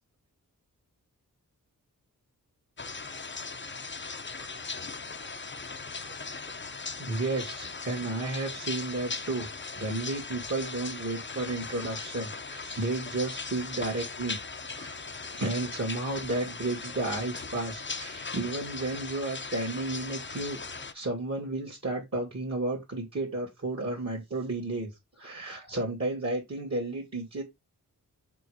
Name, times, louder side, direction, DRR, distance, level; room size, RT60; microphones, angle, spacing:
sound 1, 2.8-20.9, left 4 dB, 35° left, 0.8 m, -39 dB
voice 1, 7.0-9.5 9.7-14.4 14.7-15.0 15.3-27.4, right 2 dB, 45° right, 2.2 m, -33 dB
6.9 x 3.2 x 4.9 m
wide cardioid pair, 110°, 35 cm